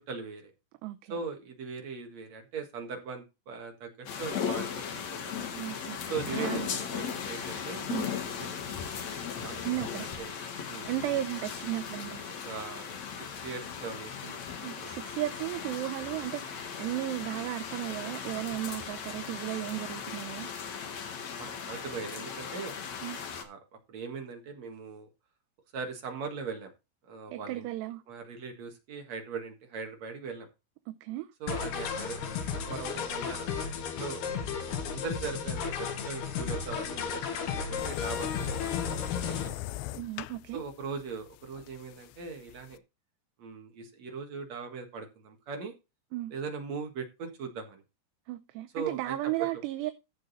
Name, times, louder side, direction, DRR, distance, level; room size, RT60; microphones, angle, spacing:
voice 1, 0.1-0.5 1.1-3.9 4.2-5.5 6.1-7.9 8.3-8.7 9.4-10.3 10.7-10.9 12.4-13.0 13.4-14.7 21.4-22.7 23.3-23.6 23.9-25.1 25.7-26.7 27.0-27.7 28.1-30.5 31.4-33.7 34.0-34.2 34.7-39.7 40.5-42.8 43.4-45.7 46.3-47.8 48.7-49.2 49.5-49.6, right 5 dB, 50° right, 2.4 m, -40 dB
voice 2, 0.8-1.2 5.6-6.0 6.3-6.7 7.9-8.1 9.7-10.1 10.9-12.2 14.6-20.5 23.0-23.2 27.3-28.0 30.9-31.3 39.9-40.6 46.1-46.3 48.3-49.9, right 15 dB, 80° right, 2.8 m, -35 dB
sound 1, 4.1-23.4, left 7 dB, 55° left, 2.2 m, -37 dB
sound 2, 31.5-39.5, left 6 dB, 70° left, 3.4 m, -34 dB
sound 3, 37.8-42.8, left 17 dB, 85° left, 2.8 m, -40 dB
15.0 x 5.1 x 4.1 m
omnidirectional pair, 4.9 m